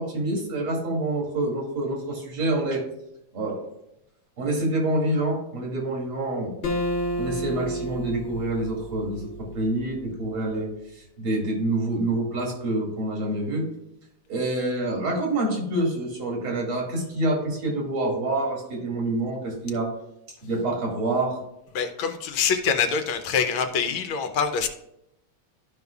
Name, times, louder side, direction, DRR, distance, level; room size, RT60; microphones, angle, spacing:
voice 1, 0.0-2.8 3.3-3.6 4.4-6.6 7.2-10.7 11.2-13.6 14.3-19.9 20.4-21.3, right 2 dB, 85° right, -1 dB, 3.0 m, -27 dB
Acoustic guitar, 6.6-10.0, equal, 40° left, 1.2 m, -31 dB
voice 2, 21.7-24.7, left 6 dB, 75° left, 7 dB, 1.4 m, -25 dB
12.5 x 5.2 x 2.3 m, 0.81 s
omnidirectional pair, 2.3 m